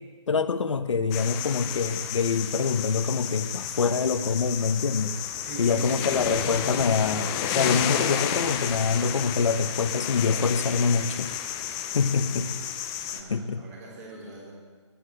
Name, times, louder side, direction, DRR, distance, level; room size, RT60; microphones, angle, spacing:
voice 1, 0.3-5.1 5.6-11.3 11.9-12.5 13.3-13.6, left 5 dB, 75° left, 11 dB, 1.0 m, -25 dB
sound 1, 1.1-13.2, left 9 dB, 15° left, 0.5 m, -31 dB
voice 2, 5.4-6.4 11.8-12.6 13.0-14.5, right 2 dB, 30° right, -2 dB, 3.8 m, -42 dB
11.5 x 10.0 x 8.4 m, 1.5 s
hypercardioid pair, 160°, 16 cm